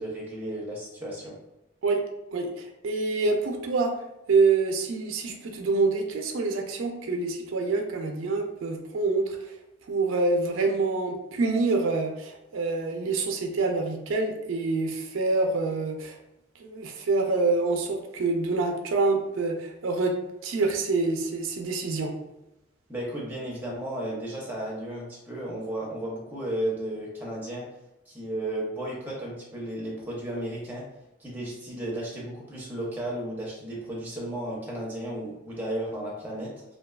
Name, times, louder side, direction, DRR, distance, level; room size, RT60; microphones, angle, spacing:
voice 1, 0.0-1.4 22.9-27.6 28.1-30.8 31.2-36.5, right 1 dB, 10° right, -4 dB, 0.5 m, -34 dB
voice 2, 2.3-3.9 4.3-9.5 9.9-16.2 16.6-20.2 20.4-22.1, right 3 dB, 85° right, 3 dB, 0.4 m, -26 dB
2.6 x 2.3 x 2.2 m, 0.91 s
head